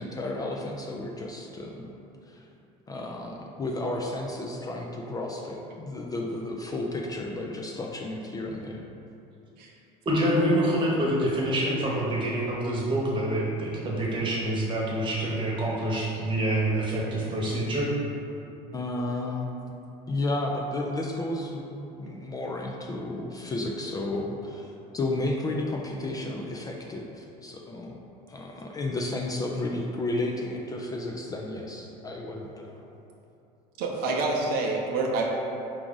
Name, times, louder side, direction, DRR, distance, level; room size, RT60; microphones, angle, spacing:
voice 1, 0.0-1.9 2.3-2.5 2.9-8.9 18.7-19.5 20.1-28.0 28.3-32.8, left 2 dB, 20° left, 0 dB, 0.3 m, -32 dB
voice 2, 10.0-17.9, right 1 dB, 30° right, -4 dB, 1.0 m, -26 dB
voice 3, 33.8-35.2, right 3 dB, 60° right, -1 dB, 0.6 m, -27 dB
4.7 x 2.4 x 3.8 m, 2.9 s
supercardioid pair, 110°, 17 cm